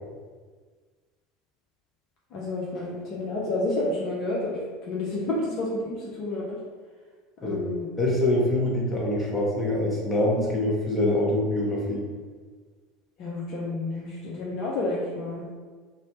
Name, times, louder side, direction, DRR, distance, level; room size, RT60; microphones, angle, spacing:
voice 1, 2.3-6.6 7.4-7.9 11.1-11.3 13.2-15.4, left 2 dB, 50° left, -5 dB, 0.4 m, -30 dB
voice 2, 8.0-12.0, left 1 dB, 20° left, -4 dB, 0.8 m, -24 dB
2.6 x 2.0 x 3.0 m, 1.5 s
figure-of-eight pair, 70°, 0 cm